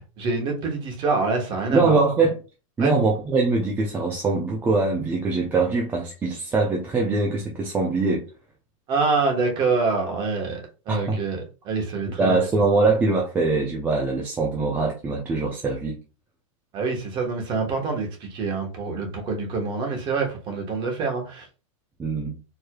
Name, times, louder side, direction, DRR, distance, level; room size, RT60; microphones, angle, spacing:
voice 1, 0.2-2.0 2.8-2.9 8.9-10.6 10.9-12.4 16.7-21.5, right 4 dB, 25° right, 1.2 m, -26 dB
voice 2, 1.7-2.4 2.8-8.2 10.9-11.2 12.2-16.0 22.0-22.4, right 3 dB, 10° right, 0.5 m, -22 dB
4.7 x 3.1 x 2.3 m
supercardioid pair, 155°, 18 cm